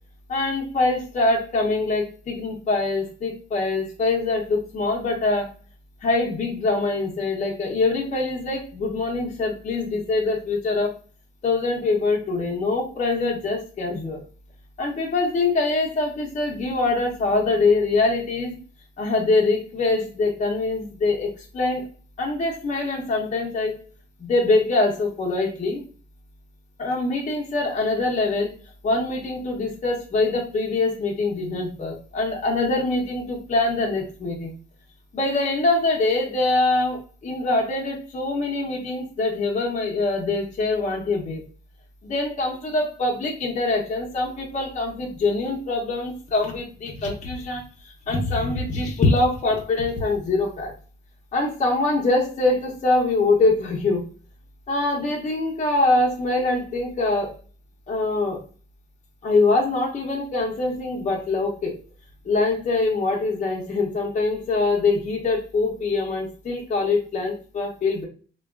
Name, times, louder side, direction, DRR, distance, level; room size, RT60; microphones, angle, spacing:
voice 1, 0.3-5.5 6.0-10.9 11.4-14.2 14.8-18.6 19.0-21.9 22.2-23.8 24.2-25.8 26.8-28.5 28.8-34.5 35.1-41.4 42.0-50.7 51.3-54.1 54.7-57.4 57.9-58.4 59.2-61.7 62.2-68.1, left 3 dB, 40° left, 0 dB, 0.6 m, -24 dB
3.4 x 2.2 x 2.2 m, 0.39 s
cardioid pair, 90°, 20 cm